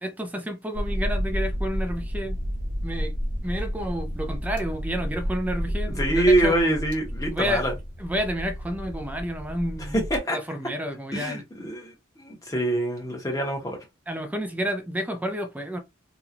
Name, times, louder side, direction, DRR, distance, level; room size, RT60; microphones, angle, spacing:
voice 1, 0.0-2.4 2.8-3.1 3.4-6.5 7.3-7.6 8.0-10.0 10.3-11.4 14.1-15.8, equal, 10° right, 0.4 m, -30 dB
sound 1, 0.7-10.2, equal, 45° right, 0.8 m, -31 dB
voice 2, 5.8-7.7 9.9-10.4 11.1-13.8, right 1 dB, 20° left, 0.9 m, -25 dB
2.9 x 2.2 x 2.5 m
head